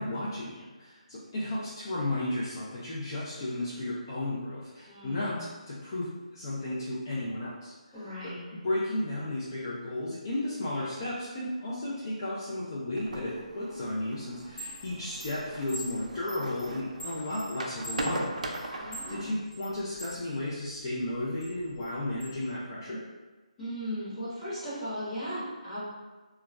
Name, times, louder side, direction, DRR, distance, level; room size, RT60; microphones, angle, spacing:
voice 1, 0.0-18.3 18.6-23.0, left 1 dB, 35° left, -7 dB, 0.4 m, -34 dB
voice 2, 4.8-5.4 7.9-8.4 18.8-19.4 23.6-25.8, equal, 5° left, -14 dB, 0.9 m, -37 dB
sound 1, 13.0-19.3, right 2 dB, 85° right, 0.4 m, -39 dB
Chime, 14.4-20.2 20.7-22.3, equal, 65° left, 1.1 m, -44 dB
2.2 x 2.0 x 3.3 m, 1.3 s
hypercardioid pair, 165°, 4 cm